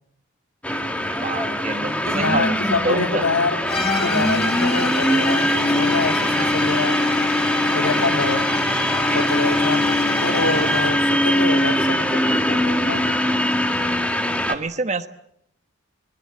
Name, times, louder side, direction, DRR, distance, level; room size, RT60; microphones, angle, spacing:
sound 1, 0.6-14.6, left 1 dB, 5° left, 1.9 m, -21 dB
voice 1, 1.2-2.5 2.8-3.2 14.5-15.1, right 3 dB, 35° right, 10 dB, 1.3 m, -26 dB
voice 2, 2.0-3.6 4.0-7.0 7.7-8.5 9.1-13.2, left 3 dB, 90° left, 7 dB, 2.2 m, -26 dB
sound 2, 3.7-11.1, left 4 dB, 30° left, 1.9 m, -31 dB
26.0 x 21.5 x 7.8 m, 0.75 s
head